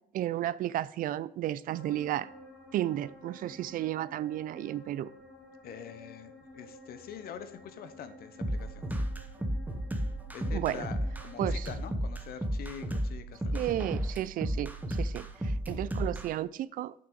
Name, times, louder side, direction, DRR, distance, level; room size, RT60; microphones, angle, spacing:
voice 1, 0.1-2.3 2.7-5.1 10.5-10.8 11.4-11.7 13.5-16.9, right 13 dB, 55° right, 0.4 m, -33 dB
sound 1, 1.7-11.6, left 1 dB, 5° left, 2.7 m, -52 dB
voice 2, 5.6-9.1 10.1-13.9, left 8 dB, 65° left, 0.9 m, -45 dB
sound 2, 8.4-16.3, equal, 10° right, 0.9 m, -33 dB
6.3 x 6.0 x 5.2 m
cardioid pair, 110°, 17 cm